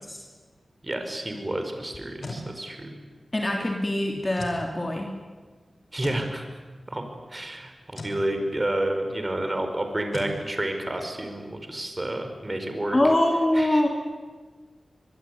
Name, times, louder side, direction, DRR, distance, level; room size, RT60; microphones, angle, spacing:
voice 1, 0.8-3.0 5.9-6.5 6.9-7.0 7.3-13.0 13.5-13.9, right 1 dB, 30° right, 6 dB, 5.1 m, -30 dB
sound 1, 1.9-2.5 4.3-4.6 6.0-6.3 7.9-8.2 10.1-10.4, left 1 dB, 60° left, 5.1 m, -36 dB
voice 2, 3.3-5.1 12.9-13.9, left 1 dB, 30° left, 1 dB, 3.4 m, -23 dB
24.5 x 22.0 x 9.7 m, 1.4 s
cardioid pair, 60°, 0 cm